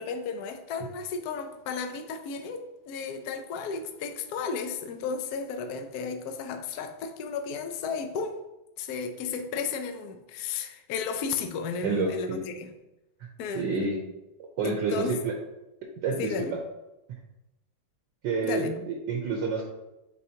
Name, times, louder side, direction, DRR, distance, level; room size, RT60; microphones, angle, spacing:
voice 1, 0.0-8.4 8.8-12.7 13.4-13.7 14.6-15.2 16.2-16.6 18.4-18.8, left 5 dB, 70° left, 6 dB, 0.9 m, -34 dB
voice 2, 11.8-12.4 13.2-13.3 13.5-14.0 14.6-15.3 15.8-16.6 18.2-19.6, right 4 dB, 70° right, 1 dB, 1.3 m, -29 dB
8.5 x 4.0 x 2.8 m, 0.97 s
omnidirectional pair, 2.2 m